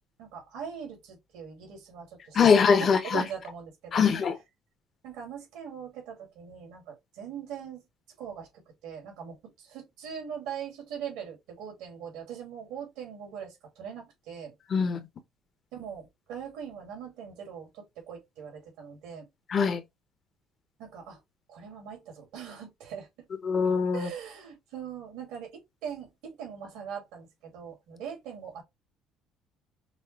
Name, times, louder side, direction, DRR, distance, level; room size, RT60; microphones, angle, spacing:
voice 1, 0.2-4.3 5.0-7.8 8.2-8.5 8.8-14.5 15.7-19.3 20.8-21.2 21.5-23.1 23.9-28.6, right 8 dB, 80° right, 2.3 m, -41 dB
voice 2, 2.3-3.2 3.9-4.4 14.7-15.0 19.5-19.8 23.4-24.1, left 6 dB, 40° left, 0.9 m, -22 dB
5.3 x 2.1 x 3.2 m
cardioid pair, 100°, 0 cm